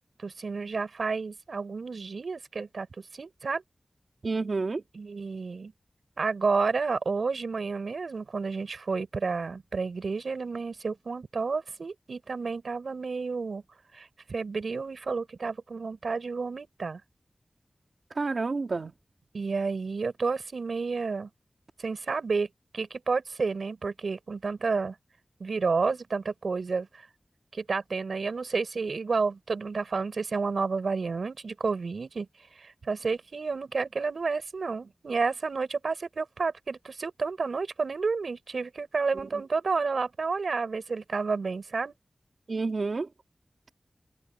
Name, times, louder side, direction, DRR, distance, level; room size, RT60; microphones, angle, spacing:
voice 1, 0.2-3.6 4.9-5.7 6.2-13.6 13.9-17.0 19.3-21.3 21.8-22.5 22.7-24.9 25.4-26.9 27.5-32.3 32.5-41.9, right 4 dB, 85° right, 6.8 m, -30 dB
voice 2, 4.2-4.8 18.2-18.9 42.5-43.1, right 3 dB, 70° right, 2.1 m, -29 dB
open air
wide cardioid pair, 75°, 0 cm